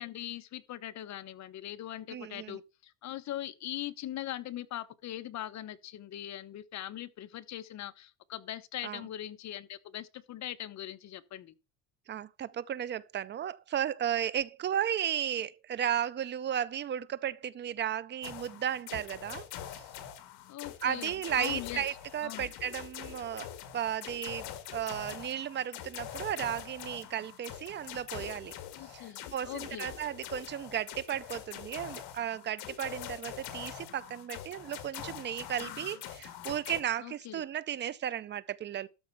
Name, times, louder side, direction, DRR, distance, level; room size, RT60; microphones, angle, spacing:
voice 1, 0.0-11.5 20.5-21.8 22.2-22.5 28.7-29.9 37.0-37.4, left 12 dB, 40° left, 0.9 m, -41 dB
voice 2, 2.1-2.6 8.8-9.0 12.1-19.8 20.8-28.5 28.8-38.9, right 10 dB, 30° right, 0.4 m, -35 dB
sound 1, 18.2-36.8, left 11 dB, 70° left, 1.9 m, -44 dB
13.0 x 4.3 x 5.7 m
cardioid pair, 135°, 41 cm